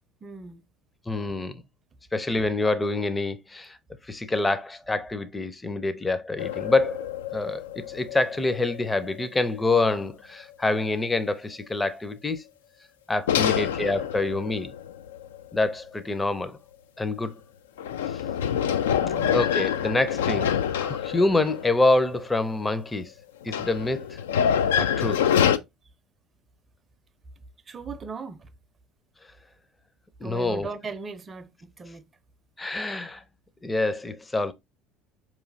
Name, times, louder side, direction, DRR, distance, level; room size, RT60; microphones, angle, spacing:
voice 1, 0.2-0.6 18.9-19.5 27.7-28.5 30.2-32.1, right 4 dB, 30° right, 0.5 m, -38 dB
voice 2, 1.1-1.6 2.1-3.8 4.0-7.1 7.3-12.5 13.1-14.7 15.5-16.6 17.0-17.4 18.1-18.2 19.3-23.1 23.4-24.2 24.8-25.3 30.2-30.7 32.6-33.2 33.6-34.5, left 2 dB, 15° left, 0.5 m, -26 dB
sound 1, 6.4-9.9 10.4-10.5 13.3-15.6 17.8-22.6 23.4-25.6, left 8 dB, 80° left, 0.3 m, -26 dB
4.7 x 3.0 x 2.6 m
hypercardioid pair, 70°, 0 cm